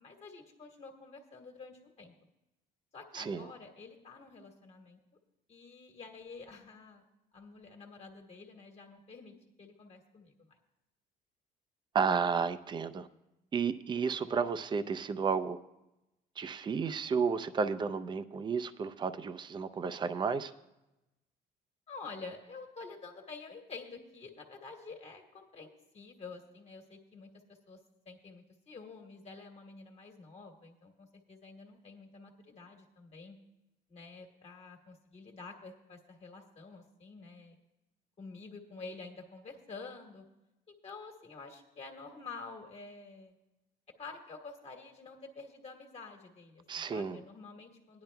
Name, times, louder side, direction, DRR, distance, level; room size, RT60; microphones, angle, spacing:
voice 1, 0.0-2.1 2.9-5.0 5.5-7.0 7.3-10.3 21.9-27.3 27.7-27.8 28.0-33.4 33.9-37.5 38.2-40.2 40.7-43.3 44.0-48.0, left 4 dB, 40° left, 1.5 m, -49 dB
voice 2, 3.1-3.5 11.9-13.1 13.5-15.6 16.4-20.5 46.7-47.2, right 5 dB, 25° right, 0.5 m, -32 dB
18.5 x 10.5 x 2.3 m
cardioid pair, 110°, 17 cm